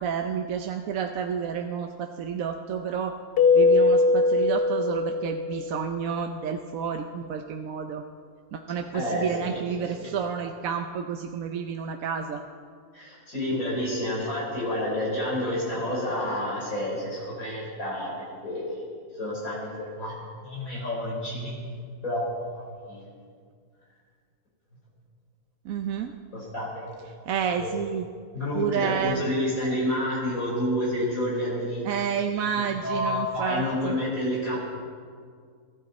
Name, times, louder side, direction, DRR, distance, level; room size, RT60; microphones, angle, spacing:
voice 1, 0.0-3.1 3.5-8.0 8.5-12.4 25.6-26.1 27.3-28.0 28.5-29.2 31.8-34.0, right 7 dB, 70° right, 5 dB, 1.1 m, -30 dB
Keyboard (musical), 3.4-5.9, left 3 dB, 45° left, 0.9 m, -21 dB
voice 2, 8.7-10.1 12.9-18.8 19.1-20.1 20.4-21.6 22.0-22.2 22.5-23.0 26.3-26.9 27.1-27.2 27.6-27.7 28.3-31.8 32.7-34.6, left 1 dB, 65° left, -6 dB, 4.8 m, -29 dB
23.5 x 13.5 x 4.2 m, 2.1 s
omnidirectional pair, 1.6 m